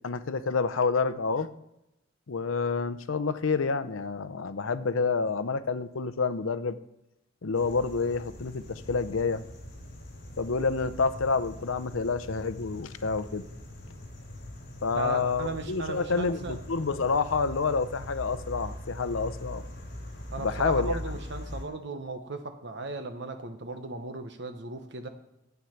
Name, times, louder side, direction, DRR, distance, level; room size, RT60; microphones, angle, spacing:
voice 1, 0.0-1.5 2.3-6.8 7.4-9.4 10.4-13.4 14.8-19.6 20.4-21.0, left 4 dB, 85° left, 14 dB, 0.6 m, -28 dB
sound 1, 7.5-21.6, left 1 dB, 55° left, 3.2 m, -42 dB
voice 2, 14.9-16.6 20.3-25.1, right 3 dB, 60° right, 7 dB, 1.1 m, -36 dB
9.4 x 8.2 x 5.8 m, 0.87 s
head